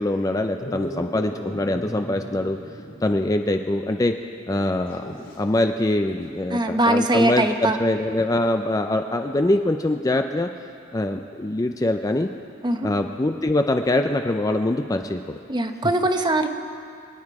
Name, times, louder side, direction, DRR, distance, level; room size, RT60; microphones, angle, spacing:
voice 1, 0.0-2.6 3.0-4.1 4.5-10.5 10.9-12.3 12.8-15.4, left 1 dB, 15° left, 5 dB, 0.4 m, -23 dB
Dog, 0.6-3.3 3.6-3.7 4.8-5.4 7.5-7.6, equal, 65° left, 4.6 m, -37 dB
voice 2, 6.5-7.8 12.6-12.9 15.5-16.5, right 1 dB, 20° right, 6 dB, 0.8 m, -21 dB
26.0 x 9.5 x 4.8 m, 2.5 s
head